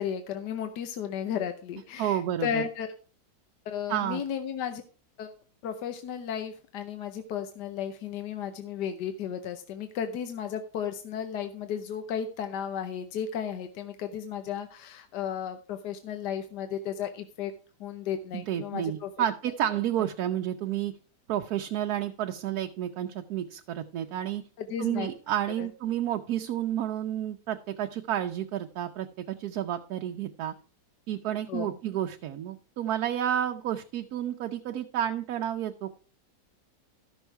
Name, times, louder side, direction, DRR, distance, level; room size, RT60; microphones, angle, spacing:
voice 1, 0.0-2.9 3.7-4.8 5.2-5.3 5.6-17.5 17.8-19.1 24.6-25.1 25.6-25.7 31.5-31.8, left 8 dB, 80° left, 8 dB, 1.4 m, -34 dB
voice 2, 2.0-2.6 3.9-4.2 18.3-20.9 21.3-24.4 24.8-30.5 31.1-35.9, right 11 dB, 70° right, 5 dB, 1.1 m, -30 dB
13.5 x 6.3 x 4.5 m, 0.38 s
omnidirectional pair, 1.8 m